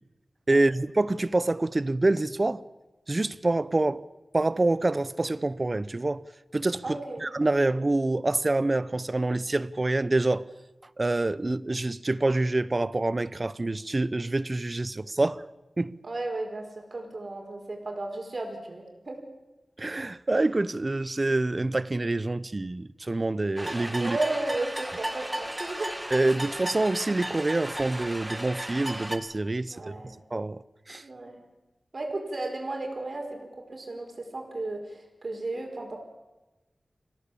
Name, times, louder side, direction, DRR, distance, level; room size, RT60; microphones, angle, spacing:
voice 1, 0.5-2.6 3.1-4.0 4.3-6.2 6.5-10.4 11.0-15.5 15.8-16.0 19.8-24.2 26.1-29.9 30.3-30.6 30.9-31.0, right 2 dB, 35° right, 0.7 m, -26 dB
voice 2, 6.8-7.2 16.0-19.2 24.0-25.9 29.7-30.1 31.0-31.4 31.9-36.0, right 2 dB, 50° right, 4.9 m, -34 dB
sound 1, 23.6-29.2, right 1 dB, 10° right, 1.7 m, -35 dB
27.0 x 16.5 x 8.6 m
wide cardioid pair, 90°, 0 cm